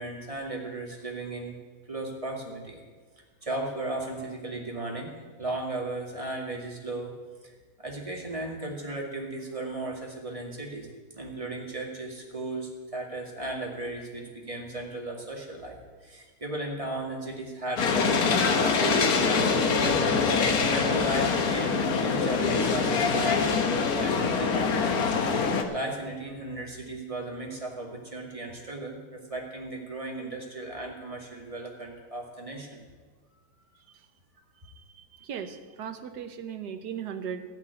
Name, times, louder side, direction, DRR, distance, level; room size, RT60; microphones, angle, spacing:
voice 1, 0.0-1.5 1.9-2.8 3.4-5.1 5.4-7.2 7.4-10.9 11.1-25.1 25.7-32.8, right 2 dB, 20° right, -1 dB, 2.2 m, -36 dB
sound 1, 17.8-25.6, left 5 dB, 65° left, 1.5 m, -24 dB
voice 2, 34.8-37.4, right 8 dB, 80° right, 8 dB, 1.5 m, -37 dB
15.0 x 5.9 x 9.6 m, 1.5 s
omnidirectional pair, 1.7 m